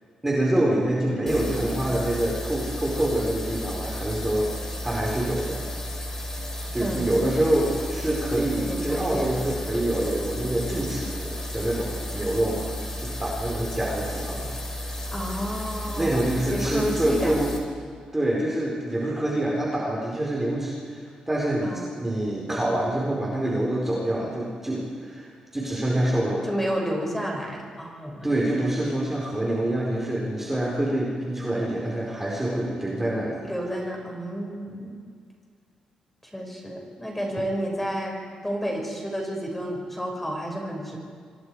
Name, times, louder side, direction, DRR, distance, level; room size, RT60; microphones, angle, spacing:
voice 1, 0.2-5.6 6.7-12.7 13.0-14.5 16.0-17.5 18.1-25.3 25.5-26.5 28.2-33.4, right 1 dB, 15° right, -3 dB, 4.6 m, -26 dB
sound 1, 1.3-17.6, left 1 dB, 20° left, 4.8 m, -33 dB
voice 2, 6.8-7.1 8.6-9.4 15.1-17.4 21.6-22.0 26.5-28.7 33.4-34.9 36.3-38.1 38.4-41.0, equal, 5° left, 0 dB, 6.2 m, -31 dB
26.5 x 24.5 x 5.0 m, 2.1 s
cardioid pair, 95°, 2 cm